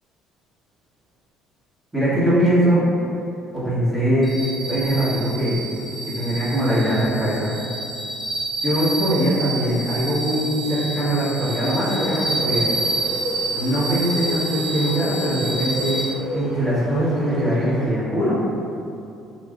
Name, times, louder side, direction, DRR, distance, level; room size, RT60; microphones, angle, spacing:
voice 1, 1.9-2.9 3.5-4.3 4.7-5.6 6.0-7.5 8.6-12.7 13.5-16.0 16.3-18.4, equal, 20° right, -13 dB, 1.5 m, -21 dB
sound 1, 4.2-16.0, right 2 dB, 5° left, 1.1 m, -28 dB
Bird, 11.4-17.9, equal, 55° right, 0.6 m, -33 dB
3.2 x 2.6 x 2.5 m, 2.6 s
supercardioid pair, 75°, 0 cm